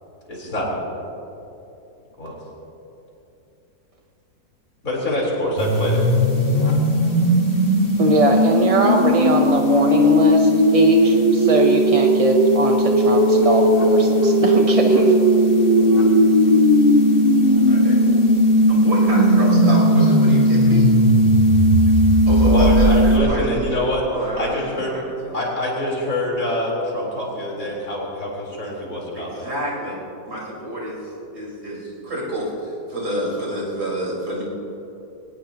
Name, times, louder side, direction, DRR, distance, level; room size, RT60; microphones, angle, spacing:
voice 1, 0.3-0.7 2.2-2.4 4.8-6.0 22.5-24.1 24.4-24.9 25.3-29.5, left 1 dB, 55° left, -4 dB, 4.5 m, -25 dB
sound 1, 5.6-23.2, equal, 35° left, 2.0 m, -16 dB
voice 2, 8.0-15.2, right 2 dB, 30° right, 2 dB, 0.7 m, -21 dB
voice 3, 17.7-18.2 18.7-20.9 22.2-23.4 24.1-25.4 29.1-30.0 30.3-34.4, equal, 75° right, -6 dB, 5.3 m, -28 dB
22.5 x 19.0 x 3.0 m, 2.9 s
omnidirectional pair, 1.7 m